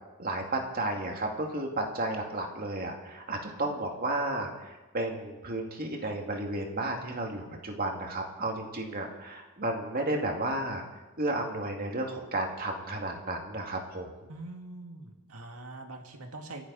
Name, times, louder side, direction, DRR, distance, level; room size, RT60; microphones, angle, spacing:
voice 1, 0.2-10.8 11.2-14.1, right 2 dB, 45° right, 1 dB, 2.5 m, -33 dB
voice 2, 14.3-16.7, right 2 dB, 80° right, 3 dB, 2.2 m, -43 dB
30.0 x 11.5 x 4.3 m, 1.1 s
head